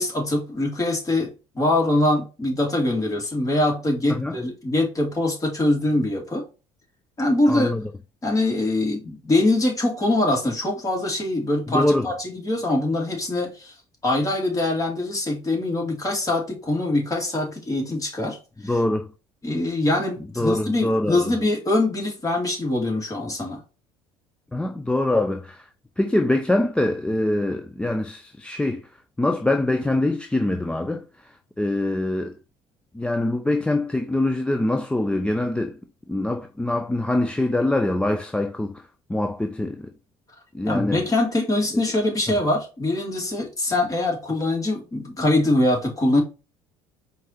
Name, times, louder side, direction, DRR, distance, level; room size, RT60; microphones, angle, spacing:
voice 1, 0.0-6.4 7.2-7.7 8.2-13.7 14.0-18.4 19.4-23.6 40.7-46.2, left 2 dB, 25° left, 2.0 m, -23 dB
voice 2, 7.5-7.9 11.7-12.1 18.6-19.1 20.4-21.4 24.5-25.7 26.0-28.9 29.2-32.4 32.9-35.8 36.1-39.9 40.5-41.0 42.3-42.4, left 1 dB, 5° left, 0.5 m, -24 dB
4.6 x 2.6 x 4.2 m
hypercardioid pair, 65°, 14 cm